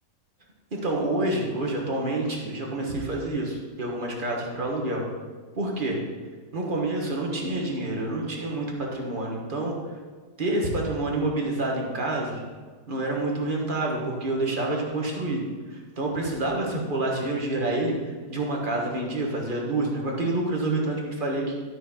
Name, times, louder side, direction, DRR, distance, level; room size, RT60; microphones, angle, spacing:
voice 1, 0.7-5.0 5.6-6.0 6.5-9.8 10.4-12.4 12.9-15.4 15.7-17.9 18.3-21.6, right 2 dB, 30° right, -1 dB, 1.6 m, -28 dB
12.5 x 6.3 x 4.2 m, 1.5 s
omnidirectional pair, 1.8 m